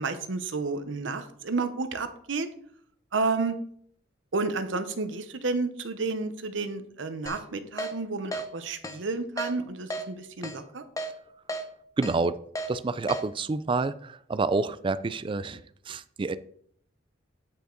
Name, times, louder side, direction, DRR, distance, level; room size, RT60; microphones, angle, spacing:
voice 1, 0.0-2.5 3.1-3.6 4.3-10.8, right 3 dB, 85° right, 0.8 m, -31 dB
Keyboard (musical), 7.3-7.4 7.8-7.9 8.3-8.5 8.8-9.0 9.4-9.5 9.9-10.0 10.4-10.6 11.0-11.1 11.5-11.6 12.0-12.2 12.6-12.7 13.1-13.2, right 1 dB, 20° left, 0.7 m, -33 dB
voice 2, 12.0-12.4 12.7-16.4, right 3 dB, 25° right, 0.3 m, -28 dB
8.7 x 5.4 x 3.8 m
head